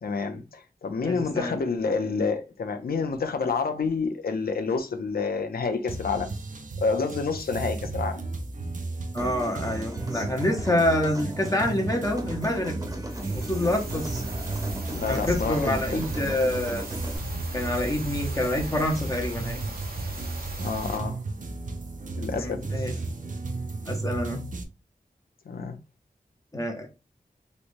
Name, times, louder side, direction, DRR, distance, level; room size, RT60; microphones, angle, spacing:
voice 1, 0.0-6.3 6.8-8.2 14.9-16.0 20.6-21.2 22.2-23.0 25.5-25.8, left 4 dB, 85° left, 0.6 m, -28 dB
voice 2, 1.0-1.6 9.1-12.7 13.3-14.2 15.1-16.8 17.5-19.6 22.3-22.9 23.9-24.4 26.5-26.9, left 1 dB, 20° left, 0.7 m, -27 dB
sound 1, 5.9-24.6, right 3 dB, 60° right, 0.6 m, -34 dB
Human voice / Acoustic guitar, 9.2-17.2, equal, 25° right, 0.8 m, -38 dB
sound 2, 13.1-21.0, right 1 dB, 80° right, 0.9 m, -37 dB
3.2 x 3.0 x 2.6 m
wide cardioid pair, 90°, 15 cm